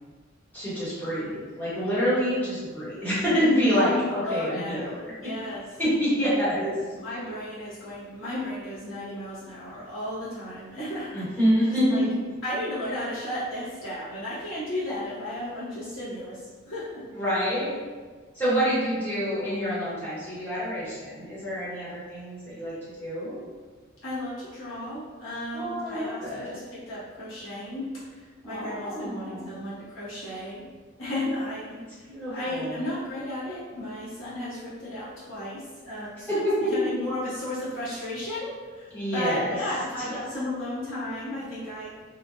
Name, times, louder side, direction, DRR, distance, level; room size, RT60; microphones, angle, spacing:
voice 1, 0.5-5.3 5.8-6.8 11.1-12.2 17.1-17.7 18.3-23.4 25.5-26.5 28.4-29.5 32.1-32.8 36.3-36.7 38.9-39.6, equal, 10° left, -12 dB, 1.3 m, -27 dB
voice 2, 3.9-5.6 6.9-11.3 11.6-12.0 12.4-17.0 24.0-30.7 31.0-36.4 36.7-41.9, left 1 dB, 70° left, -10 dB, 1.1 m, -34 dB
2.9 x 2.4 x 2.6 m, 1.5 s
head